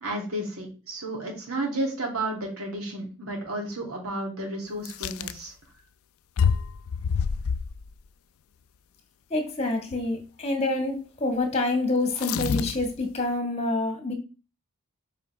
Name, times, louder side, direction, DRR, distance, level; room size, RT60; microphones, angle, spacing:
voice 1, 0.0-5.5, right 1 dB, 70° right, -1 dB, 2.8 m, -32 dB
sound 1, 4.9-5.4 6.4-7.9 9.9-10.1 12.1-13.0, left 6 dB, 65° left, 0.4 m, -27 dB
voice 2, 9.3-14.1, left 2 dB, 30° left, 4 dB, 1.7 m, -27 dB
7.7 x 4.9 x 3.5 m, 0.32 s
head